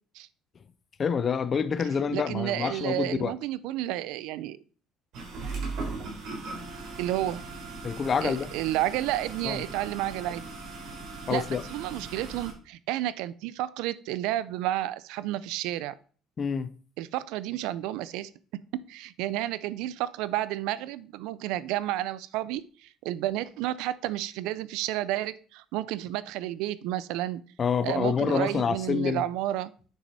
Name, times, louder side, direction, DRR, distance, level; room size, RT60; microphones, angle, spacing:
voice 1, 1.0-3.3 7.8-8.5 9.4-9.6 11.3-11.6 16.4-16.7 27.6-29.2, left 6 dB, 25° left, 0.5 m, -27 dB
voice 2, 2.1-4.6 7.0-7.4 8.2-10.4 11.3-11.4 11.7-16.0 17.0-18.3 18.7-27.4 27.8-29.7, right 14 dB, 90° right, 0.5 m, -31 dB
sound 1, 5.1-12.5, right 3 dB, 55° right, 3.9 m, -39 dB
9.8 x 6.2 x 4.1 m
cardioid pair, 180°, 0 cm